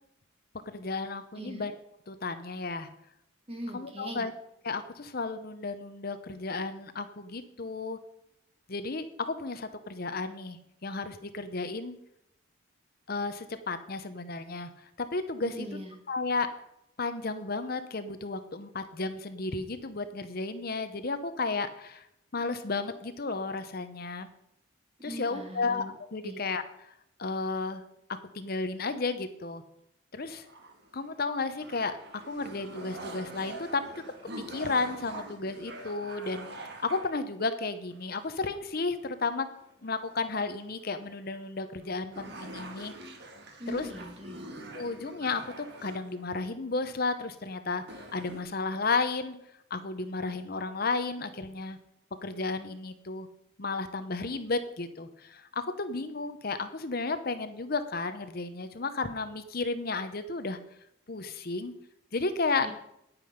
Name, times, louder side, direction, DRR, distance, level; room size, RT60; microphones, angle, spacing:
voice 1, 0.7-1.7 2.1-2.9 3.7-4.3 4.6-8.0 8.7-12.0 13.1-14.7 15.0-15.7 16.1-16.5 17.0-22.1 22.3-24.3 25.0-25.8 26.1-26.9 27.2-27.8 28.3-29.6 30.1-30.4 30.9-33.8 34.5-36.5 36.8-39.5 39.8-42.9 43.7-43.9 44.7-45.4 45.8-47.8 48.1-49.4 49.7-51.8 52.2-53.3 53.6-60.6 61.1-61.7 62.1-62.7, left 3 dB, 45° left, 10 dB, 0.8 m, -33 dB
voice 2, 1.4-1.7 3.5-4.3 15.4-16.0 25.0-25.9 26.2-26.4 43.6-44.5 62.6-62.7, equal, 30° right, 2 dB, 1.9 m, -40 dB
sound 1, 30.3-31.2 31.6-37.1 37.9-38.6 38.9-39.0 39.5-40.7 41.4-41.5 41.8-41.9 42.1-46.5 47.4-47.5 47.8-48.4, right 1 dB, 55° right, 1.5 m, -45 dB
9.8 x 8.9 x 5.2 m, 0.78 s
head